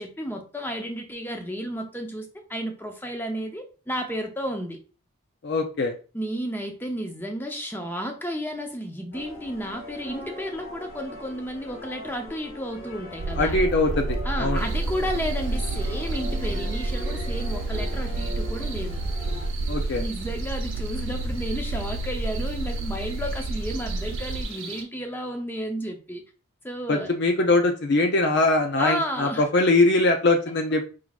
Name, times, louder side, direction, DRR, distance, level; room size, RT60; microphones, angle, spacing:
voice 1, 0.0-4.8 6.1-13.6 14.2-19.0 19.9-26.2 26.6-27.1 28.8-29.5, equal, 10° left, 0.6 m, -32 dB
voice 2, 5.4-5.9 13.4-14.7 19.7-20.0 26.9-30.8, left 2 dB, 50° left, 0.5 m, -22 dB
sound 1, 9.1-19.5, left 2 dB, 75° left, 1.4 m, -40 dB
sound 2, 13.2-24.4, right 2 dB, 45° right, 0.4 m, -29 dB
sound 3, 14.5-24.8, right 5 dB, 70° right, 0.9 m, -42 dB
4.7 x 3.8 x 2.3 m
head